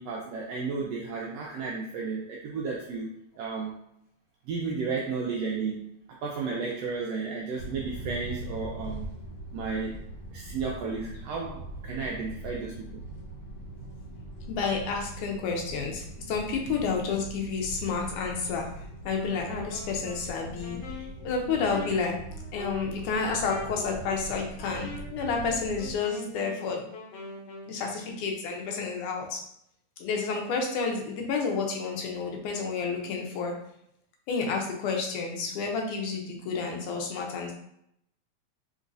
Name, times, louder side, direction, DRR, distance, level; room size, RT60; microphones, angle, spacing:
voice 1, 0.0-3.8 4.5-5.9 6.2-9.1 9.5-10.0 10.3-13.0, right 4 dB, 85° right, -3 dB, 1.4 m, -33 dB
sound 1, 7.6-26.0, right 2 dB, 40° left, 1.4 m, -41 dB
voice 2, 14.5-22.2 22.5-26.8 27.7-29.4 30.0-33.5 34.3-37.5, left 5 dB, 85° left, 1 dB, 2.3 m, -30 dB
Wind instrument woodwind instrument, 19.0-27.8, left 3 dB, 70° left, 1.6 m, -43 dB
5.2 x 3.1 x 2.6 m, 0.73 s
omnidirectional pair, 3.5 m